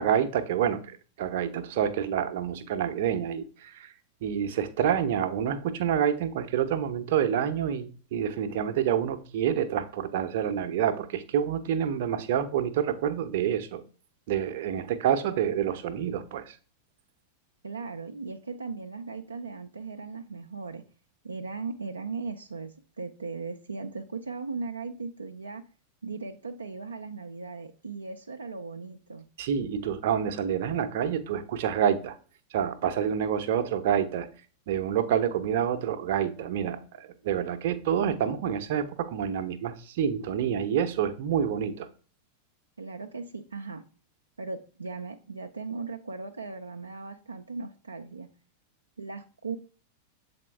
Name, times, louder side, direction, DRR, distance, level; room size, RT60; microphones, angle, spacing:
voice 1, 0.0-3.9 4.2-13.8 14.3-16.6 29.4-32.2 32.5-34.3 34.7-41.9, right 9 dB, 50° right, 10 dB, 0.7 m, -28 dB
voice 2, 17.6-20.8 21.2-25.6 26.0-29.3 42.8-43.8 44.4-48.3 49.0-49.6, right 4 dB, 75° right, 5 dB, 0.4 m, -38 dB
7.4 x 4.3 x 3.2 m, 0.39 s
figure-of-eight pair, 90°, 0 cm